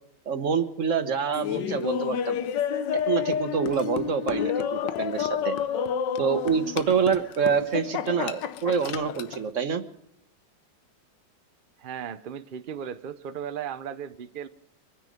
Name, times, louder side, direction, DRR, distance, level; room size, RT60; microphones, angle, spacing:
voice 1, 0.3-2.4 2.9-5.5 6.2-9.8, right 6 dB, 50° right, 10 dB, 1.3 m, -26 dB
Laughter, 1.3-9.4, left 8 dB, 80° left, 1.4 m, -30 dB
voice 2, 11.8-14.5, right 8 dB, 75° right, 10 dB, 0.4 m, -36 dB
25.5 x 9.7 x 5.1 m, 0.76 s
omnidirectional pair, 1.9 m